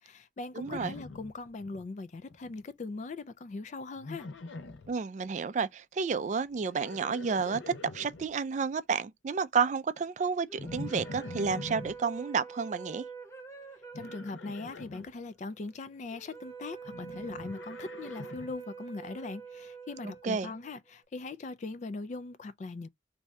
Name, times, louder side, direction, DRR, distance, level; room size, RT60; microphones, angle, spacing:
voice 1, 0.0-4.3 14.0-22.9, left 3 dB, 40° left, 0.3 m, -40 dB
voice 2, 0.5-0.9 4.9-7.6 7.9-13.1 20.0-20.5, right 5 dB, 40° right, 0.3 m, -31 dB
Livestock farm animals working animals, 0.6-1.9 2.1-2.7 4.0-4.9 6.5-8.3 10.6-12.0 13.9-15.1 16.8-18.6, left 2 dB, 85° left, 0.6 m, -44 dB
sound 1, 10.5-20.9, right 5 dB, 15° left, 0.7 m, -46 dB
3.2 x 2.7 x 3.4 m
head